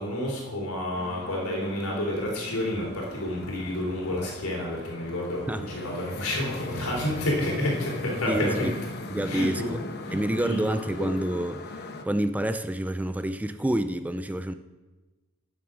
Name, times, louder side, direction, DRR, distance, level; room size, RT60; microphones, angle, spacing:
voice 1, 0.0-8.7 9.2-9.7 10.0-10.6 11.0-11.1, left 1 dB, 85° left, -2 dB, 3.6 m, -29 dB
sound 1, 0.9-12.0, left 2 dB, 50° left, 1.0 m, -40 dB
voice 2, 8.3-8.7 9.1-9.9 10.1-14.5, right 1 dB, 5° right, 11 dB, 0.3 m, -28 dB
11.0 x 6.9 x 6.2 m, 1.2 s
head